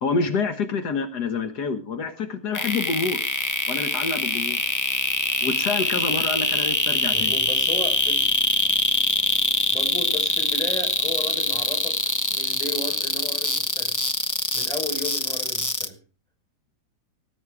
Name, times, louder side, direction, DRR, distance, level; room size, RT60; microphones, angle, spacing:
voice 1, 0.0-3.2 3.7-4.6 5.4-7.3, left 4 dB, 70° left, 7 dB, 1.8 m, -27 dB
sound 1, 2.5-15.9, left 2 dB, 25° left, 0.4 m, -23 dB
voice 2, 7.1-8.4 9.7-12.0 12.3-13.9 14.5-16.0, left 1 dB, ahead, 5 dB, 4.6 m, -35 dB
18.5 x 8.8 x 4.8 m, 0.34 s
omnidirectional pair, 1.8 m